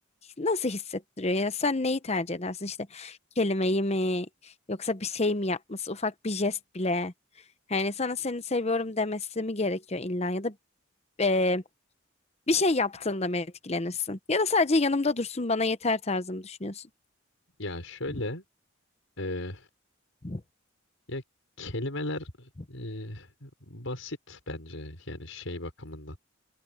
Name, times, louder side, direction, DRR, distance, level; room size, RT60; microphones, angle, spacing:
voice 1, 0.4-4.3 4.7-7.1 7.7-10.5 11.2-11.6 12.5-16.8 20.2-20.4, left 2 dB, 30° left, 0.9 m, -28 dB
voice 2, 17.6-18.4 19.2-19.7 21.1-21.2 21.6-26.3, left 1 dB, 85° left, 5.3 m, -36 dB
open air
head